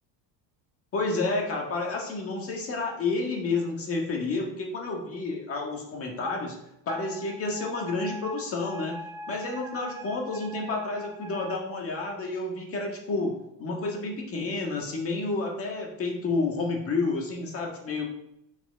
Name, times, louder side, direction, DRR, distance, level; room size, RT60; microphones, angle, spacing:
voice 1, 0.9-6.5 6.8-9.0 9.3-13.3 13.6-18.1, left 3 dB, 30° left, 0 dB, 1.7 m, -30 dB
Wind instrument woodwind instrument, 6.9-11.6, right 1 dB, 10° right, 0.7 m, -42 dB
6.8 x 5.9 x 4.0 m, 0.81 s
cardioid pair, 170°, 45 cm